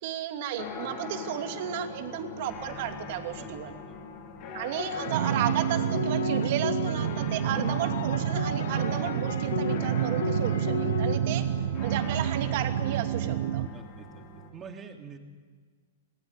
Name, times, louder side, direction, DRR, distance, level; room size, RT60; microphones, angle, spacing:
voice 1, 0.0-3.7 4.5-11.4 11.8-13.6, right 11 dB, 50° right, 6 dB, 2.7 m, -33 dB
sound 1, 0.6-14.5, left 4 dB, 40° left, 5.2 m, -41 dB
voice 2, 3.4-4.0 11.4-11.6 13.7-14.3 14.5-15.2, right 6 dB, 20° right, 3 dB, 2.9 m, -47 dB
sound 2, 4.8-12.2, left 8 dB, 80° left, 1.0 m, -36 dB
sound 3, 5.1-13.7, right 10 dB, 70° right, 1.2 m, -29 dB
27.0 x 19.5 x 10.0 m, 1.5 s
hypercardioid pair, 150°, 0 cm